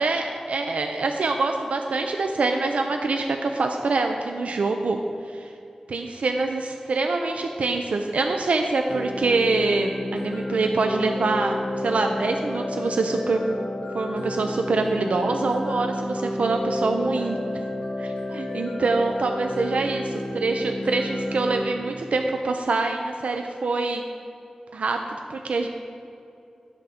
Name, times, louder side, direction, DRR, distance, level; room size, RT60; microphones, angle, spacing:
voice 1, 0.0-5.0 5.3-5.5 5.9-13.4 13.9-17.4 18.0-20.0 20.3-24.0 24.7-25.0 25.3-25.7, right 3 dB, 85° right, 4 dB, 0.4 m, -25 dB
sound 1, 8.9-21.7, left 1 dB, 75° left, 1.2 m, -31 dB
9.7 x 3.7 x 5.7 m, 2.6 s
wide cardioid pair, 100°, 2 cm